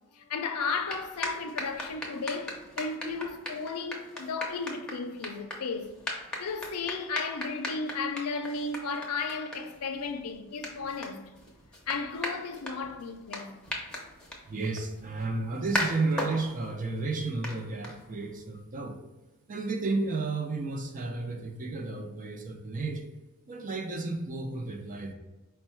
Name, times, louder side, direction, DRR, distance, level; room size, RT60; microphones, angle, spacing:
voice 1, 0.1-5.9 6.4-11.2 11.9-13.5, left 4 dB, 85° left, 0.5 m, -34 dB
sound 1, 0.6-18.4, left 1 dB, 5° left, 0.7 m, -39 dB
voice 2, 14.5-19.0 19.5-23.0 23.5-25.1, right 3 dB, 35° right, 0.5 m, -32 dB
4.5 x 2.2 x 4.3 m
head